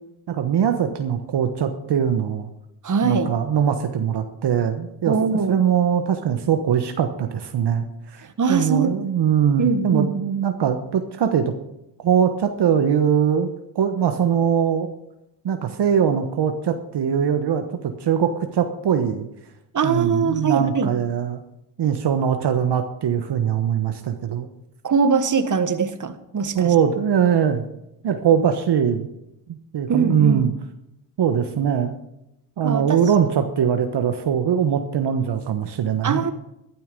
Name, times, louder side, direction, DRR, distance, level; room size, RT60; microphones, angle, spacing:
voice 1, 0.3-2.5 3.0-5.1 5.5-8.2 8.5-11.5 12.0-13.5 13.7-14.9 15.4-19.3 19.8-21.4 21.8-24.5 26.5-27.6 28.0-29.1 29.5-30.5 31.2-31.9 32.6-36.2, right 8 dB, 60° right, 7 dB, 1.3 m, -21 dB
voice 2, 2.8-3.3 5.1-5.5 8.2-9.1 9.6-10.1 19.7-20.9 24.8-26.7 29.9-30.4 32.6-33.0 36.0-36.3, right 5 dB, 40° right, 10 dB, 1.5 m, -22 dB
12.5 x 12.0 x 5.3 m, 0.87 s
cardioid pair, 70°, 45 cm